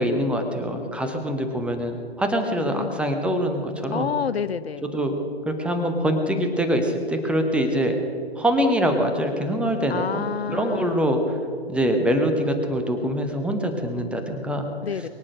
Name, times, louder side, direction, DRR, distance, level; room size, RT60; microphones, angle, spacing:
voice 1, 0.0-4.1 4.8-5.1 5.5-8.0 8.4-10.2 10.5-11.2 11.7-14.7, equal, 5° right, 5 dB, 0.9 m, -24 dB
voice 2, 2.5-3.0 3.9-4.9 9.9-11.2 14.8-15.1, left 7 dB, 70° left, 16 dB, 0.7 m, -29 dB
22.5 x 8.7 x 6.4 m, 2.6 s
figure-of-eight pair, 130°, 32 cm